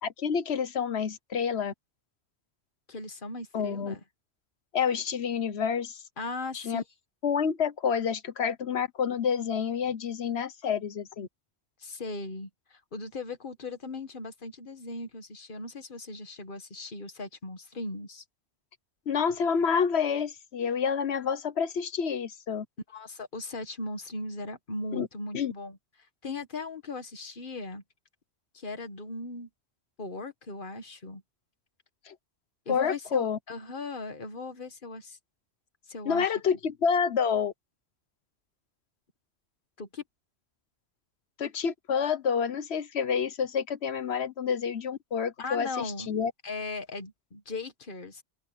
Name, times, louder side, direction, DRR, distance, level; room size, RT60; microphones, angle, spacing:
voice 1, 0.0-1.7 3.5-3.9 4.7-6.0 6.5-6.8 7.2-11.3 19.1-22.6 24.9-25.1 25.3-25.5 32.1-32.2 32.7-33.4 36.0-37.5 41.4-46.3, left 6 dB, 80° left, 1.3 m, -28 dB
voice 2, 2.9-4.0 6.2-6.8 11.8-18.2 22.9-25.8 26.2-27.8 28.5-29.5 30.0-31.2 32.6-35.2 35.9-36.3 39.8-40.0 45.4-46.2 46.4-48.2, left 2 dB, 50° left, 1.8 m, -38 dB
open air
omnidirectional pair, 1.1 m